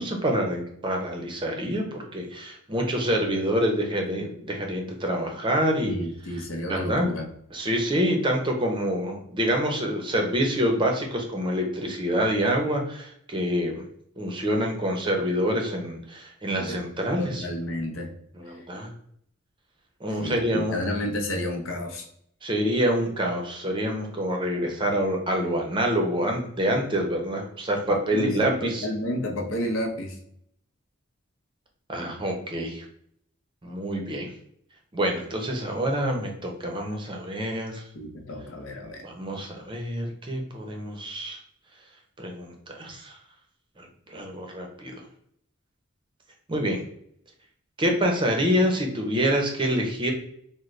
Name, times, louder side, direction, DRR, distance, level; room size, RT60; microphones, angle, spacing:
voice 1, 0.0-5.9 6.3-7.1 7.5-13.9 14.2-17.4 18.3-18.9 20.0-20.8 22.4-28.9 31.9-32.8 33.6-34.3 34.9-37.8 39.0-41.4 42.2-43.2 43.8-45.0 46.5-46.8 47.8-50.1, equal, 25° right, 2 dB, 0.6 m, -26 dB
voice 2, 5.8-7.3 16.5-16.8 17.2-18.1 20.2-22.0 28.1-30.2 37.9-39.0, left 1 dB, 75° left, 2 dB, 0.7 m, -31 dB
3.8 x 2.1 x 3.1 m, 0.69 s
head